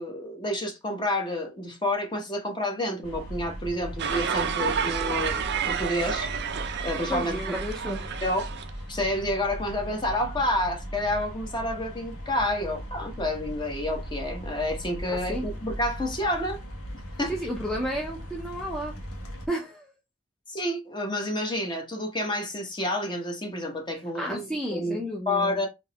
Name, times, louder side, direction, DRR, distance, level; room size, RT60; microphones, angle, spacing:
voice 1, 0.0-5.4 5.6-6.3 6.8-7.5 7.9-8.5 8.9-16.6 17.2-17.3 20.5-25.0 25.3-25.7, left 1 dB, 20° left, 1.0 m, -29 dB
sound 1, 3.0-19.5, equal, 90° left, 1.3 m, -38 dB
sound 2, 4.0-8.7, right 7 dB, 50° right, 0.5 m, -30 dB
voice 2, 7.1-8.0 15.3-15.5 17.3-19.0 19.5-19.9 24.1-25.6, equal, ahead, 0.7 m, -32 dB
3.9 x 2.9 x 3.5 m
head